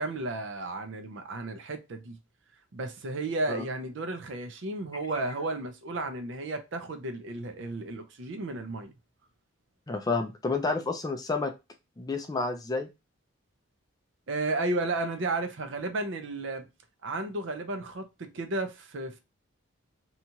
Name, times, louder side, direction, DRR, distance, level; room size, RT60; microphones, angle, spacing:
voice 1, 0.0-2.2 2.7-8.9 14.3-16.7 17.0-19.2, right 2 dB, 60° right, 0.5 m, -33 dB
voice 2, 9.9-11.5 12.0-12.9, left 3 dB, 20° left, 0.3 m, -30 dB
2.8 x 2.3 x 2.8 m
head